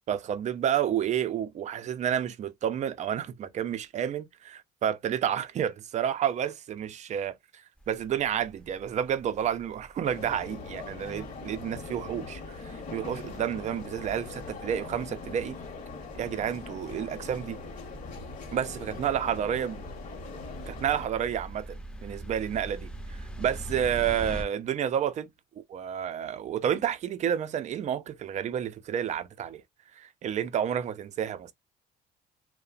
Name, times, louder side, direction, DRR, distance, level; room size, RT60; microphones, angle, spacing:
voice 1, 0.1-15.6 16.2-17.6 18.5-19.8 20.7-25.3 25.6-29.6 30.0-31.5, right 9 dB, 45° right, 0.4 m, -30 dB
sound 1, 7.8-24.4, right 1 dB, 5° left, 0.6 m, -44 dB
sound 2, 10.0-21.1, left 4 dB, 50° left, 0.9 m, -42 dB
2.8 x 2.1 x 2.4 m
cardioid pair, 110°, 17 cm